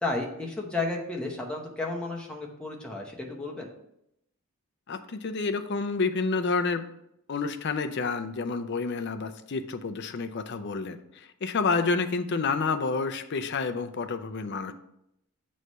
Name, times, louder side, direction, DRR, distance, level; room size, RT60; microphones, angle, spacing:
voice 1, 0.0-3.7, left 2 dB, 5° left, -1 dB, 1.0 m, -32 dB
voice 2, 4.9-6.9 7.3-14.7, left 4 dB, 50° left, 9 dB, 0.5 m, -29 dB
7.8 x 3.2 x 5.4 m, 0.79 s
head